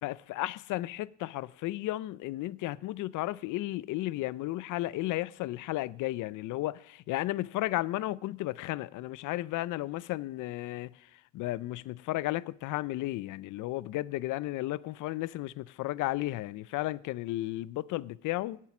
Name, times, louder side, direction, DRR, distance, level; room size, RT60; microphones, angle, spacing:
voice 1, 0.0-18.6, left 17 dB, 70° left, 0.5 m, -34 dB
18.0 x 7.6 x 6.0 m
cardioid pair, 165°, 32 cm